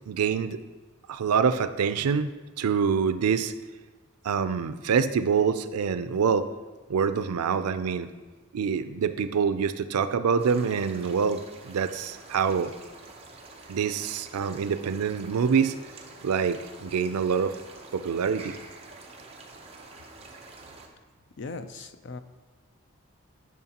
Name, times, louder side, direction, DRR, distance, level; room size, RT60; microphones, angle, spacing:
voice 1, 0.1-0.6 1.1-3.5 4.2-6.5 6.9-8.1 8.5-12.7 13.7-15.7 16.2-17.5 17.9-18.6, right 6 dB, 90° right, 12 dB, 0.4 m, -26 dB
sound 1, 10.4-20.9, right 3 dB, 25° right, 0.7 m, -47 dB
voice 2, 21.4-22.2, left 3 dB, 55° left, 10 dB, 0.4 m, -38 dB
11.0 x 5.8 x 2.9 m, 1.3 s
head